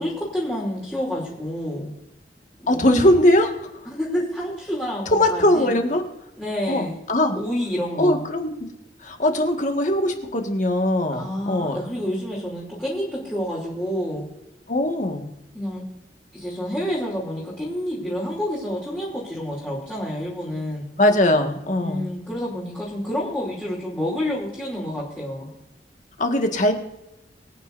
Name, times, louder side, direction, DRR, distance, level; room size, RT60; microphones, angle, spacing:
voice 1, 0.0-1.9 2.6-2.9 3.9-5.8 6.4-7.0 7.3-8.3 11.1-14.2 15.5-15.8 16.3-20.9 21.8-25.5, equal, 10° left, -8 dB, 2.9 m, -28 dB
voice 2, 2.7-3.5 5.1-6.0 6.7-7.4 8.0-8.5 9.0-11.8 14.7-15.3 21.0-22.0 26.2-26.7, left 1 dB, 45° left, 4 dB, 1.7 m, -20 dB
23.5 x 9.3 x 2.6 m, 0.91 s
head